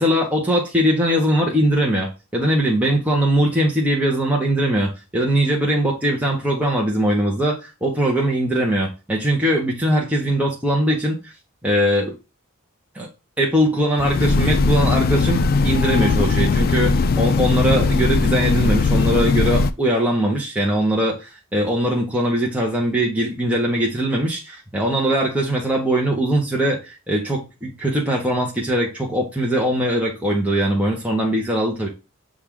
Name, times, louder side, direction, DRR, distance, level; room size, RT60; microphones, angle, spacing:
voice 1, 0.0-11.3 11.6-12.1 12.9-13.1 13.4-31.9, right 1 dB, 5° right, -3 dB, 0.8 m, -21 dB
Train, 14.0-19.7, left 4 dB, 45° left, 0.3 m, -19 dB
5.9 x 2.4 x 3.5 m, 0.28 s
head